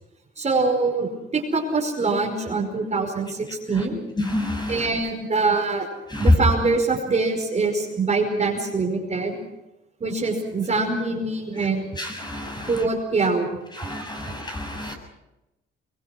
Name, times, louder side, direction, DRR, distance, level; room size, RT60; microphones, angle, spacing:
voice 1, 0.4-4.0 4.7-5.9 6.1-9.4 10.0-11.8 12.7-13.5, right 3 dB, 35° right, 3 dB, 5.1 m, -24 dB
voice 2, 4.3-4.8 6.1-6.3 12.0-12.7 13.8-14.9, left 1 dB, 20° left, 3 dB, 7.3 m, -25 dB
23.0 x 22.5 x 6.2 m, 0.95 s
cardioid pair, 90°, 20 cm